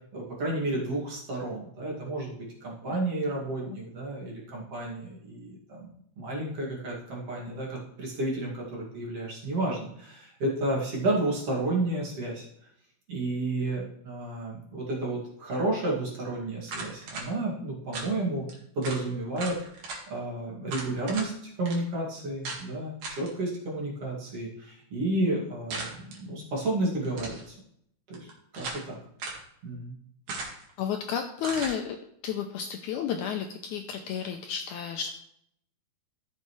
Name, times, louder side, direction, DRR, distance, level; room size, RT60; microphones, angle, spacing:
voice 1, 0.1-12.5 13.1-18.4 18.7-19.6 20.1-27.6 28.1-29.0 29.6-30.0, right 2 dB, 45° right, -4 dB, 2.9 m, -31 dB
sound 1, 16.7-17.3 17.9-18.1 18.5-18.6 18.8-19.0 19.4-20.0 20.7-21.3 21.7-21.8 22.4-22.6 23.0-23.3 25.7-26.2 27.0-27.5 28.1-28.9 29.2-29.4 30.3-30.7 31.4-31.8, right 3 dB, 60° right, 3.2 m, -37 dB
voice 2, 30.8-32.0 32.2-35.2, left 8 dB, 90° left, 4 dB, 1.7 m, -32 dB
14.5 x 6.6 x 3.2 m, 0.72 s
omnidirectional pair, 4.2 m